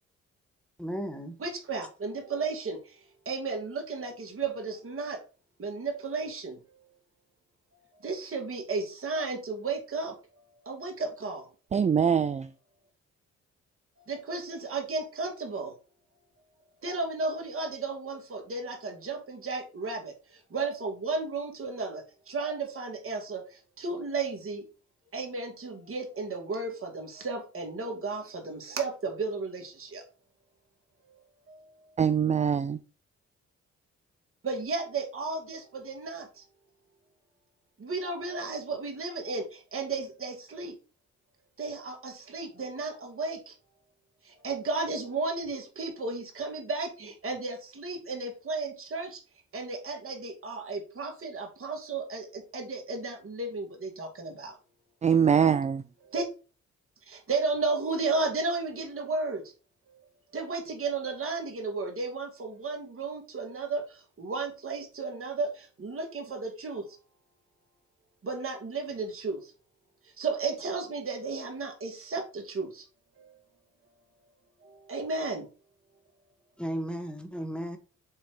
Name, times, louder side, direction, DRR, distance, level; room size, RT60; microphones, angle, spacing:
voice 1, 0.8-1.4 76.6-77.8, equal, 5° left, 1.4 m, -34 dB
voice 2, 1.4-2.8 3.3-5.2 5.6-6.6 8.0-10.1 10.7-11.5 14.1-15.7 16.8-20.1 20.5-23.4 23.8-24.6 25.1-30.0 31.5-31.6 34.4-36.4 37.8-40.7 41.6-43.5 44.4-49.2 49.5-54.6 56.1-56.2 57.1-59.4 60.3-63.8 64.2-66.8 68.2-69.4 70.2-72.8 73.2-73.3 74.9-75.5, right 3 dB, 50° right, 2.3 m, -33 dB
voice 3, 11.7-12.5 32.0-32.8 55.0-55.8, right 7 dB, 25° right, 0.4 m, -23 dB
7.4 x 3.2 x 4.8 m
cardioid pair, 75°, 29 cm